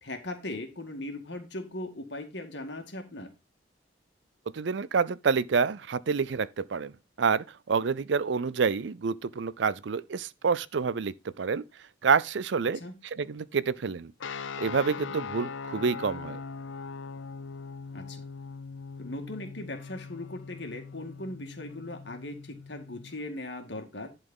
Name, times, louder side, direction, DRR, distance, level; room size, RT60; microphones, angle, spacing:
voice 1, 0.0-3.3 12.6-13.0 17.9-18.2 19.0-24.1, left 1 dB, 65° left, 1.9 m, -39 dB
voice 2, 4.5-6.9 7.2-11.6 12.0-12.8 13.2-14.1 14.6-16.4, right 5 dB, 70° right, 0.5 m, -28 dB
sound 1, 14.2-23.2, left 5 dB, 85° left, 0.6 m, -41 dB
11.0 x 4.2 x 5.4 m
head